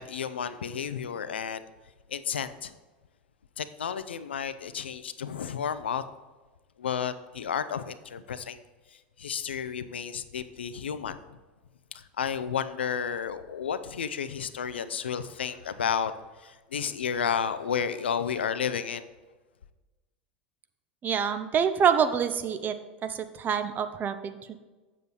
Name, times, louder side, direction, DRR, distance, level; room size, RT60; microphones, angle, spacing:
voice 1, 0.0-1.6 2.1-2.7 3.6-6.0 6.8-8.6 8.9-11.2 11.9-19.1, left 7 dB, 80° left, 12 dB, 0.5 m, -32 dB
voice 2, 21.0-22.7 23.0-24.6, right 7 dB, 30° right, 10 dB, 0.7 m, -26 dB
7.8 x 7.5 x 4.0 m, 1.2 s
figure-of-eight pair, 85°, 6 cm